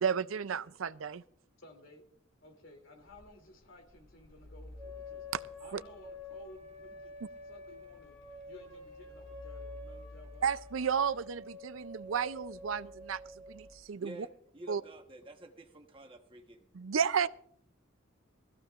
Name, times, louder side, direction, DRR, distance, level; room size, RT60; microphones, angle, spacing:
voice 1, 0.0-1.2 5.3-5.4 5.7-5.8 10.4-13.2 13.5-14.2 14.7-14.8 16.7-17.3, right 7 dB, 90° right, 15 dB, 0.5 m, -32 dB
voice 2, 1.6-2.0 2.4-5.2 5.6-7.1 7.5-10.5, left 1 dB, 75° left, 3 dB, 3.0 m, -56 dB
Mechanical fan, 2.5-13.8, left 1 dB, 55° left, 3.7 m, -55 dB
sound 1, 4.8-13.7, left 2 dB, 15° left, 5.7 m, -49 dB
voice 3, 14.0-16.7, right 1 dB, 25° right, 4 dB, 1.2 m, -50 dB
20.0 x 14.5 x 2.5 m, 0.67 s
head